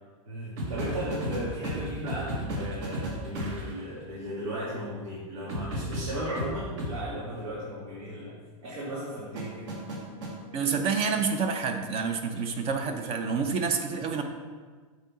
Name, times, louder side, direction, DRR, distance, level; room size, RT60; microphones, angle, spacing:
voice 1, 0.3-9.7, equal, 80° right, -8 dB, 2.3 m, -36 dB
sound 1, 0.6-3.8 5.5-7.0 9.3-10.4 12.4-12.6, equal, 55° right, 1.6 m, -34 dB
voice 2, 10.5-14.2, right 5 dB, 35° right, 5 dB, 0.7 m, -28 dB
8.3 x 3.8 x 5.0 m, 1.5 s
supercardioid pair, 145°, 18 cm